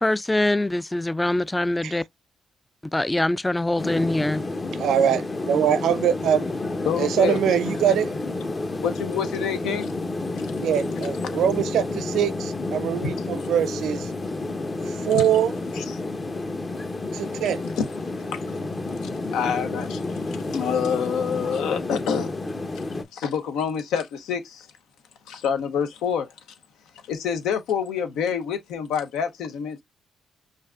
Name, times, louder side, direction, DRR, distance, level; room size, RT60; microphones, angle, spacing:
voice 1, 0.0-2.0 2.9-4.4, left 1 dB, 15° left, 0.3 m, -23 dB
sound 1, 3.8-23.0, left 2 dB, 35° left, 1.0 m, -30 dB
voice 2, 4.8-6.5 7.0-8.1 10.6-14.1 14.9-15.5 17.1-17.6, right 9 dB, 75° right, 0.5 m, -23 dB
voice 3, 6.8-7.4 8.8-9.9 10.4-10.5 11.3-11.4 13.0-13.1 15.1-15.3 15.8-16.0 17.8-17.9 18.3-18.4 19.0-22.4 23.1-24.7 25.3-26.3 27.1-29.8, left 7 dB, 80° left, 0.8 m, -27 dB
5.5 x 2.6 x 2.4 m
supercardioid pair, 55°, 0 cm